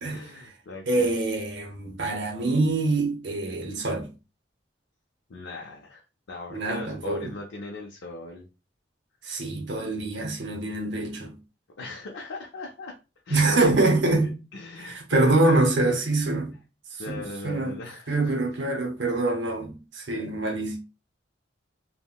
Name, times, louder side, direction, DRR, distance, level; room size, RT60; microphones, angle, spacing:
voice 1, 0.1-1.1 5.3-8.5 11.8-13.0 13.2-13.9 14.2-16.0 17.0-18.3 19.2-19.3 20.2-20.3, left 2 dB, 75° left, 0.5 m, -39 dB
voice 2, 0.9-4.1 6.5-7.3 9.2-11.4 13.3-14.3 14.8-16.5 17.1-17.8 18.1-20.8, right 2 dB, 70° right, 0.7 m, -25 dB
3.5 x 2.1 x 2.2 m
head